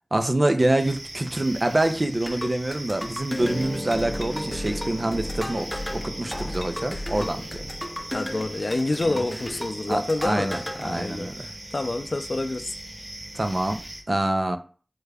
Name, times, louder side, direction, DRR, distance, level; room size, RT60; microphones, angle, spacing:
voice 1, 0.1-7.6 9.0-9.3 9.9-11.3 13.3-13.8 14.1-14.6, right 1 dB, 55° right, 0.4 m, -26 dB
sound 1, 0.8-14.0, right 1 dB, 80° right, 0.8 m, -40 dB
sound 2, 2.2-10.8, left 1 dB, 20° left, 0.6 m, -34 dB
sound 3, 3.4-13.6, left 1 dB, 40° left, 1.2 m, -40 dB
voice 2, 8.1-12.7, left 2 dB, 70° left, 0.3 m, -28 dB
3.6 x 3.3 x 2.2 m
wide cardioid pair, 50°, 0 cm